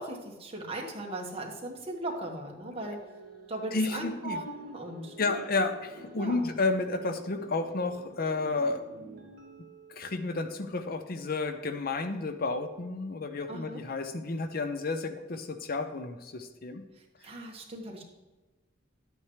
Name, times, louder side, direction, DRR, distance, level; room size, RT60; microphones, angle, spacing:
voice 1, 0.0-3.0 3.5-5.4 6.2-6.5 13.5-13.8 17.0-18.0, right 1 dB, 30° right, 0 dB, 1.6 m, -38 dB
sound 1, 2.8-11.2, right 2 dB, 55° right, 1.5 m, -51 dB
voice 2, 3.7-4.4 5.2-8.8 9.9-16.8 17.2-17.3, left 3 dB, 50° left, 9 dB, 0.6 m, -31 dB
11.0 x 8.6 x 3.2 m, 1.2 s
head